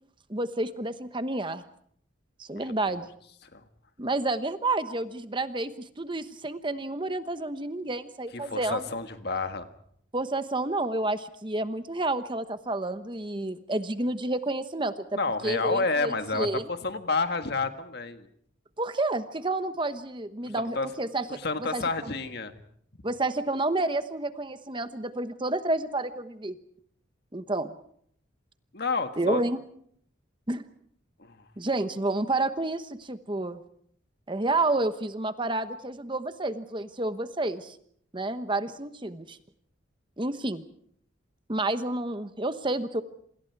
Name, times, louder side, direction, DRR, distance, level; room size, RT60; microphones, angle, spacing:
voice 1, 0.3-1.6 2.4-3.1 4.0-5.7 6.0-8.9 10.1-15.0 15.4-16.6 18.8-21.3 21.7-22.1 23.0-26.6 27.3-27.7 29.2-29.6 30.5-30.7 31.6-33.6 34.3-37.8 38.1-39.4 40.2-40.6 41.5-43.0, right 2 dB, 25° right, 10 dB, 1.1 m, -30 dB
voice 2, 8.3-9.7 15.1-18.3 20.4-20.9 21.3-22.5 28.7-29.4 31.2-31.4, left 3 dB, 55° left, 8 dB, 1.7 m, -30 dB
27.5 x 26.5 x 4.7 m, 0.65 s
head